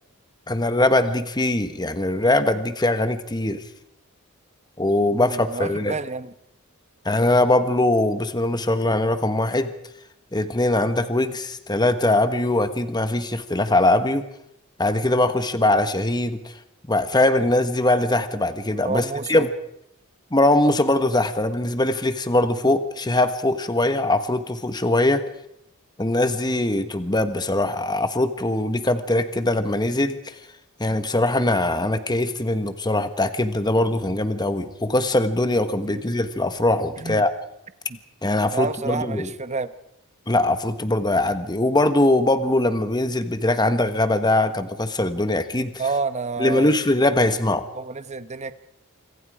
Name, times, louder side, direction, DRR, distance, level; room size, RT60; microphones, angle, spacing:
voice 1, 0.5-3.6 4.8-6.0 7.0-9.7 10.3-14.2 14.8-16.5 16.9-19.5 20.3-25.2 26.0-30.3 30.8-37.3 38.2-39.3 40.3-45.7 46.4-47.6, left 2 dB, 20° left, 10 dB, 1.3 m, -21 dB
voice 2, 5.1-6.3 18.8-19.5 35.8-36.2 37.0-37.3 37.9-38.0 38.5-39.7 45.8-46.8 47.7-48.5, right 4 dB, 30° right, 12 dB, 1.1 m, -29 dB
27.0 x 26.0 x 4.9 m, 0.77 s
head